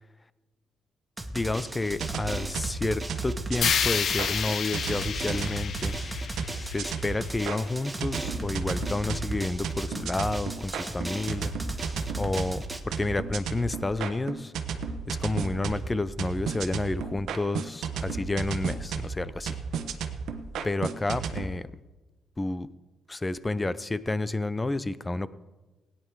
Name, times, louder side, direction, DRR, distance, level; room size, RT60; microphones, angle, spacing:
Drum, 1.2-12.8, right 1 dB, 15° right, 1.3 m, -37 dB
voice 1, 1.3-6.0 6.6-14.5 15.1-19.6 20.6-21.7 22.4-22.7 23.1-25.3, left 2 dB, 20° left, 16 dB, 0.6 m, -30 dB
sound 1, 1.9-4.3 4.7-7.6 8.0-21.5, right 6 dB, 75° right, 1.1 m, -34 dB
sound 2, 3.6-7.7, left 7 dB, 55° left, 0.6 m, -30 dB
17.0 x 9.8 x 4.7 m, 1.2 s
cardioid pair, 90°, 0 cm